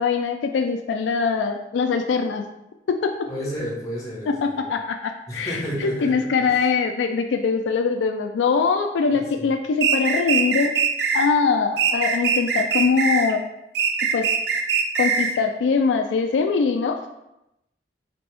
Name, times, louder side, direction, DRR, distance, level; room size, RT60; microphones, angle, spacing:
voice 1, 0.0-2.4 3.0-3.1 4.4-10.7 11.1-13.4 14.1-14.3 15.0-17.1, left 5 dB, 80° left, 5 dB, 0.3 m, -22 dB
voice 2, 3.3-4.6 5.3-6.7 9.1-9.4, equal, 20° left, -6 dB, 1.5 m, -32 dB
sound 1, 9.8-11.3 11.8-13.3 13.7-15.4, right 6 dB, 65° right, 0.5 m, -22 dB
4.0 x 3.4 x 3.3 m, 0.87 s
head